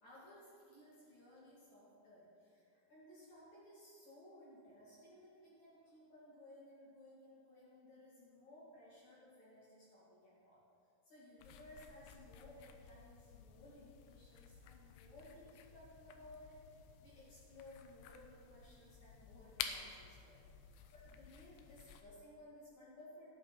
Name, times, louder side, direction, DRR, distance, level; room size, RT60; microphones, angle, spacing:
voice 1, 0.0-10.6 11.0-23.4, left 1 dB, 45° left, -9 dB, 3.5 m, -59 dB
sound 1, 11.4-22.0, left 8 dB, 80° left, 2.7 m, -52 dB
13.0 x 9.8 x 4.2 m, 2.5 s
omnidirectional pair, 5.0 m